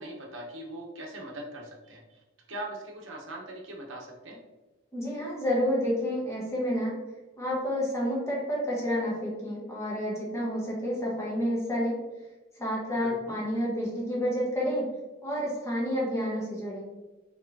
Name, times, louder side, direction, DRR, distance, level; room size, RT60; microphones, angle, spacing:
voice 1, 0.0-2.2 2.5-4.4 13.0-13.4, right 1 dB, 85° right, 0 dB, 0.8 m, -41 dB
voice 2, 4.9-7.0 7.4-12.0 12.6-14.8 15.2-16.8, equal, 15° left, -5 dB, 1.1 m, -29 dB
4.4 x 3.1 x 2.6 m, 1.2 s
head